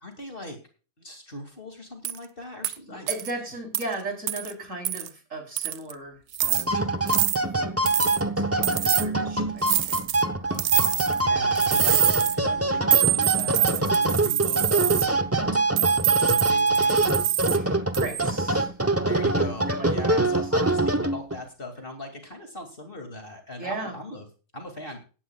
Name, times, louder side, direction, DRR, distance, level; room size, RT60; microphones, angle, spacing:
voice 1, 0.0-0.6 1.0-3.1 10.5-15.2 15.7-17.4 19.0-24.3 24.5-25.0, left 1 dB, 35° left, 4 dB, 2.7 m, -39 dB
sound 1, 2.0-2.2 2.6-2.8 3.1-3.3 3.7-3.8 4.3-4.5 4.9-5.1 5.6-5.9 6.3-6.6 7.1-7.4 7.9-8.2 8.6-9.1 9.6-10.2 10.6-11.2 11.6-12.4 12.9-15.1 15.8-17.6 17.9-18.3, right 11 dB, 70° right, 1.3 m, -25 dB
voice 2, 2.9-7.8 8.3-10.1 11.3-11.7 17.5-18.8 19.7-20.2 23.6-24.0, right 2 dB, 50° right, 3 dB, 4.1 m, -37 dB
sound 2, 6.4-21.4, right 2 dB, 15° right, 0.6 m, -24 dB
17.0 x 11.5 x 2.4 m, 0.35 s
omnidirectional pair, 1.7 m